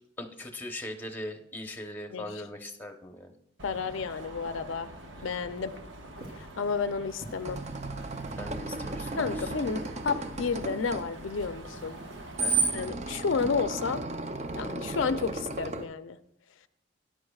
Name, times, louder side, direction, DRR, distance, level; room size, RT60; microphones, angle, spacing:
voice 1, 0.2-3.3 5.2-5.3 8.4-9.3 12.4-12.6, left 1 dB, 10° left, 4 dB, 0.8 m, -40 dB
voice 2, 2.1-2.4 3.6-4.9 5.2-5.7 6.6-7.6 9.2-12.0 12.7-14.0 14.6-16.2, left 5 dB, 80° left, 11 dB, 0.5 m, -31 dB
Screech, 3.6-12.9, right 4 dB, 75° right, 1.2 m, -37 dB
Walk footsteps, 6.2-6.5 7.2-7.4 8.3-8.6 9.2-9.6 10.4-10.8 11.7-12.2 12.6-12.9 13.4-13.9 14.8-15.3, right 1 dB, 50° right, 2.5 m, -46 dB
sound 1, 7.1-15.8, right 2 dB, 35° right, 0.5 m, -37 dB
13.5 x 10.5 x 2.4 m, 0.77 s
head